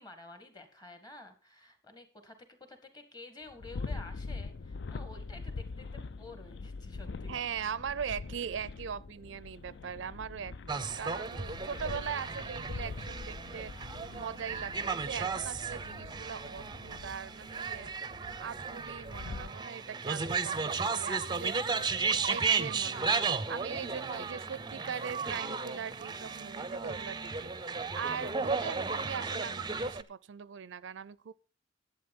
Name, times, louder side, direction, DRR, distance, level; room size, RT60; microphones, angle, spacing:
voice 1, 0.0-7.6, left 2 dB, 20° left, 1.9 m, -51 dB
sound 1, 3.5-19.5, left 4 dB, 60° left, 0.4 m, -44 dB
voice 2, 7.3-18.0 18.4-31.3, right 7 dB, 70° right, 0.4 m, -41 dB
sound 2, 8.5-15.9, right 3 dB, 80° left, 2.5 m, -59 dB
sound 3, 10.7-30.0, right 5 dB, 20° right, 0.5 m, -34 dB
11.0 x 8.4 x 5.4 m
head